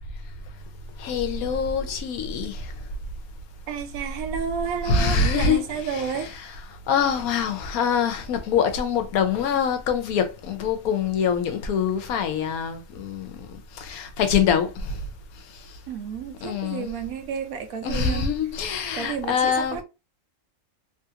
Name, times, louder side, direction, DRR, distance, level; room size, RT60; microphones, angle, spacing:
voice 1, 1.0-2.7 4.8-6.6 6.9-15.0 15.4-15.8 16.4-16.9 17.8-19.8, left 6 dB, 80° left, 1.1 m, -25 dB
voice 2, 3.7-6.3 15.9-18.3 18.9-19.8, right 7 dB, 80° right, 1.1 m, -31 dB
3.2 x 2.4 x 2.7 m
omnidirectional pair, 1.5 m